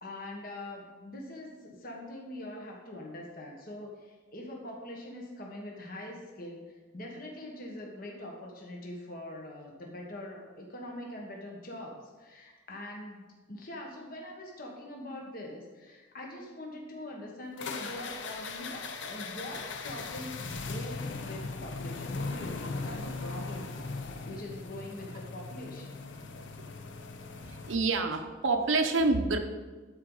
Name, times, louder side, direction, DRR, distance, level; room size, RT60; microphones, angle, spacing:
voice 1, 0.0-26.0, left 1 dB, 45° left, 0 dB, 1.4 m, -43 dB
sound 1, 17.6-27.8, left 3 dB, 70° left, 0.7 m, -39 dB
voice 2, 27.3-29.4, right 3 dB, 85° right, 5 dB, 0.8 m, -27 dB
12.0 x 4.6 x 3.9 m, 1.3 s
head